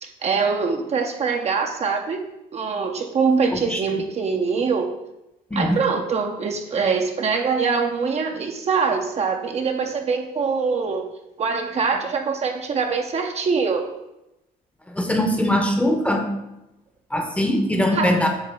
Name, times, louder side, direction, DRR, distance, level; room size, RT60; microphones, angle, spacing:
voice 1, 0.0-2.2 2.5-4.9 5.5-11.1 11.4-13.9 17.9-18.1, right 5 dB, 40° right, 3 dB, 0.8 m, -23 dB
voice 2, 14.9-16.2 17.1-18.3, left 1 dB, 10° left, 3 dB, 0.9 m, -21 dB
7.8 x 2.8 x 5.6 m, 0.91 s
cardioid pair, 110°, 17 cm